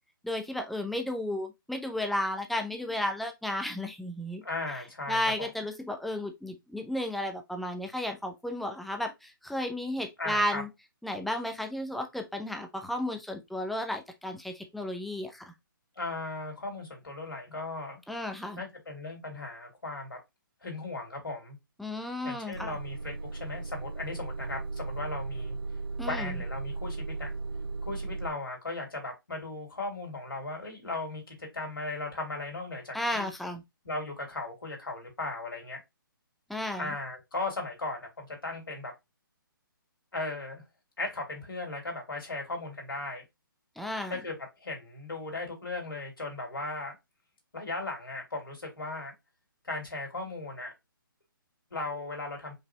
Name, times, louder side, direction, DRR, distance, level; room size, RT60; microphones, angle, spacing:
voice 1, 0.2-4.4 5.1-10.7 11.0-15.5 18.1-18.6 21.8-22.7 26.0-26.4 32.9-33.6 36.5-36.9 43.8-44.1, left 1 dB, ahead, 0.5 m, -33 dB
voice 2, 4.4-5.5 10.2-10.6 16.0-18.0 18.6-20.2 20.6-21.6 22.2-25.6 26.1-27.3 27.8-33.3 33.8-35.8 36.8-38.9 40.1-40.6 41.0-43.2 44.1-46.9 47.5-49.1 49.6-50.7 51.7-52.5, left 2 dB, 80° left, 2.8 m, -37 dB
Motor vehicle (road) / Engine starting / Idling, 22.5-28.3, right 3 dB, 90° right, 1.0 m, -36 dB
5.2 x 4.1 x 2.2 m
figure-of-eight pair, 135°, 12 cm